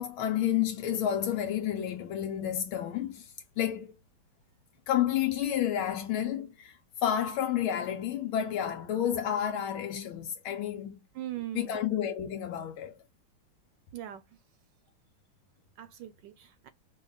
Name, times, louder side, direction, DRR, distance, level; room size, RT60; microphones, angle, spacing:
voice 1, 0.0-3.9 4.9-11.0 11.5-12.9, left 10 dB, 80° left, 1.5 m, -30 dB
voice 2, 11.2-11.8 13.9-14.2 15.8-16.7, right 12 dB, 75° right, 1.1 m, -40 dB
5.3 x 2.3 x 3.8 m
omnidirectional pair, 2.2 m